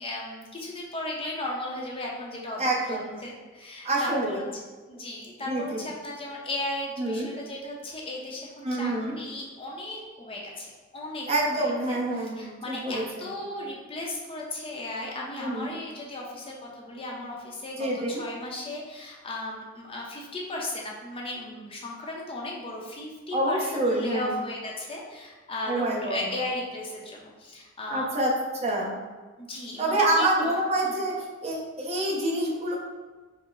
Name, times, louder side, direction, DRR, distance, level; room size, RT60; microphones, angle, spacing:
voice 1, 0.0-4.4 4.9-11.3 11.5-28.0 29.4-30.5 30.8-31.0, left 1 dB, 30° left, -2 dB, 0.6 m, -36 dB
voice 2, 2.6-3.2 3.8-4.4 5.5-5.8 7.0-7.3 8.6-9.2 11.3-13.3 15.4-15.7 17.8-18.2 23.3-24.3 25.7-26.2 27.9-28.3 28.6-28.9 29.8-31.1 31.4-32.8, right 1 dB, 35° right, -3 dB, 0.7 m, -27 dB
5.3 x 2.1 x 3.8 m, 1.3 s
head